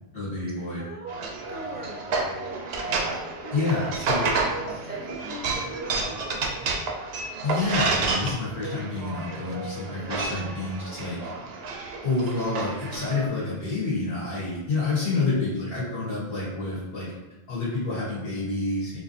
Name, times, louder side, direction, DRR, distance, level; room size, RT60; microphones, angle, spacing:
voice 1, 0.1-0.8 3.5-4.3 7.4-11.2 12.0-17.1 17.5-19.0, left 3 dB, 60° left, -7 dB, 1.3 m, -28 dB
voice 2, 0.8-1.2 1.5-2.7 3.1-3.5 4.3-6.5 10.3-10.5 15.1-15.2, right 2 dB, 10° right, -3 dB, 0.5 m, -41 dB
sound 1, 1.1-13.3, right 3 dB, 75° right, 0.8 m, -30 dB
4.1 x 2.6 x 2.7 m, 1.1 s
omnidirectional pair, 1.1 m